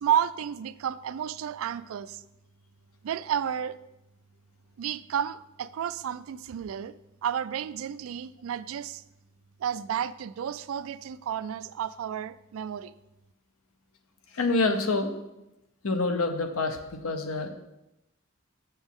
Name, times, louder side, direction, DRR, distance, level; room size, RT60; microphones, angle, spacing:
voice 1, 0.0-2.2 3.0-3.8 4.8-6.9 7.2-9.0 9.6-12.9, right 9 dB, 70° right, 16 dB, 0.3 m, -31 dB
voice 2, 14.3-15.1 15.8-17.5, left 3 dB, 85° left, 6 dB, 0.8 m, -27 dB
7.1 x 7.0 x 3.6 m, 0.92 s
head